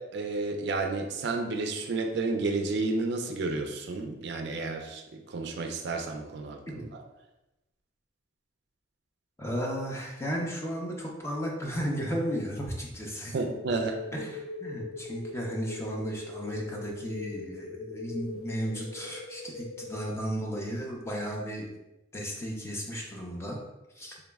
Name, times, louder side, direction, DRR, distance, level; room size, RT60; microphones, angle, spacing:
voice 1, 0.0-6.9 13.3-14.0, right 3 dB, 60° right, 4 dB, 0.4 m, -31 dB
voice 2, 9.4-13.4 14.1-21.8 22.1-23.6 23.9-24.2, equal, 15° left, -1 dB, 0.5 m, -34 dB
sound 1, 13.5-20.0, left 3 dB, 90° left, 0.4 m, -41 dB
3.8 x 2.0 x 3.4 m, 0.97 s
head